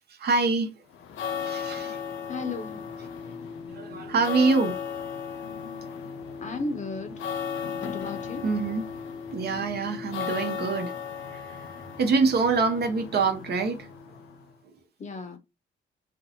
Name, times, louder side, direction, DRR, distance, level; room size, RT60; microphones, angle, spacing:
voice 1, 0.1-0.7 1.4-2.0 3.7-4.8 8.4-8.8 9.3-11.0 11.3-11.7 12.0-13.9, right 4 dB, 55° right, 0.7 m, -25 dB
sound 1, 0.9-14.5, left 7 dB, 80° left, 0.6 m, -36 dB
voice 2, 2.3-2.8 6.4-7.1 7.8-8.4 15.0-15.4, left 3 dB, 40° left, 0.6 m, -34 dB
2.6 x 2.0 x 2.8 m
cardioid pair, 90°, 20 cm